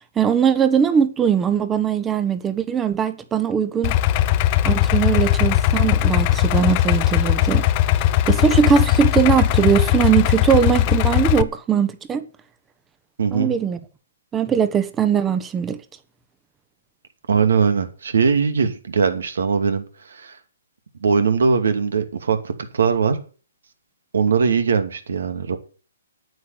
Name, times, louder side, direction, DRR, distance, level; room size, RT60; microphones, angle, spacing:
voice 1, 0.2-4.0 4.6-7.7 8.3-12.2 13.3-13.8 14.3-15.8, right 7 dB, 15° right, 1.3 m, -20 dB
Idling, 3.8-11.4, left 12 dB, 35° left, 0.8 m, -19 dB
voice 2, 13.2-13.5 17.3-20.4 21.0-23.2 24.1-25.6, right 5 dB, 70° right, 2.6 m, -20 dB
9.5 x 8.7 x 9.2 m
hypercardioid pair, 140°, 0 cm